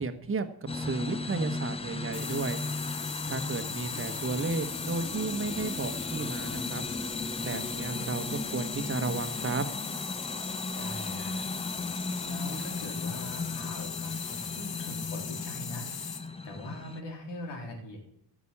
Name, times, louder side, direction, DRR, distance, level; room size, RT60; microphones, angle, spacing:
voice 1, 0.0-2.6 3.3-6.8 7.4-9.6, right 4 dB, 30° right, 8 dB, 1.2 m, -33 dB
sound 1, 0.7-17.0, left 3 dB, 15° left, 0.7 m, -36 dB
sound 2, 2.1-16.3, left 7 dB, 60° left, 1.5 m, -39 dB
voice 2, 10.8-11.4 12.2-18.0, left 1 dB, 85° left, 1 dB, 3.7 m, -42 dB
15.0 x 6.2 x 8.5 m, 0.74 s
cardioid pair, 120°, 41 cm